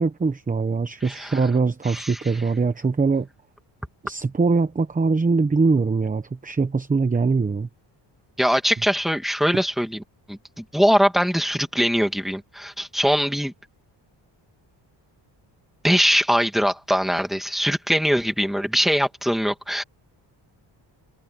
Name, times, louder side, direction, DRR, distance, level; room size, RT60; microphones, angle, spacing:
voice 1, 0.0-3.3 4.0-7.7, right 4 dB, 20° right, 0.9 m, -22 dB
voice 2, 1.0-1.4 1.8-2.2 8.4-10.0 10.3-13.5 15.8-19.8, equal, ahead, 2.5 m, -22 dB
wide cardioid pair, 160°, 45 cm